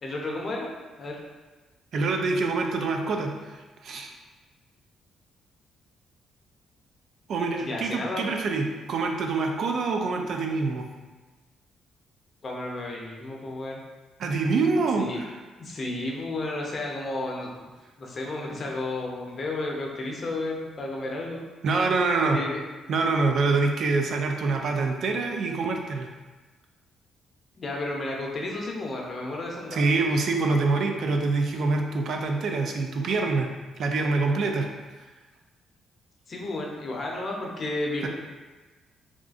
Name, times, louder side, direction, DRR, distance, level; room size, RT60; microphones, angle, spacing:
voice 1, 0.0-0.7 1.0-1.2 7.6-8.2 12.4-13.8 15.0-15.2 15.6-17.7 18.0-21.4 22.3-22.6 27.6-29.8 36.3-38.1, left 2 dB, 45° left, -1 dB, 0.6 m, -32 dB
voice 2, 1.9-3.3 3.8-4.1 7.3-10.9 14.2-15.3 21.6-22.4 22.9-26.1 29.7-33.5 33.8-34.7 38.0-38.1, right 3 dB, 65° right, 3 dB, 0.4 m, -25 dB
3.7 x 2.4 x 2.4 m, 1.3 s
cardioid pair, 90°, 0 cm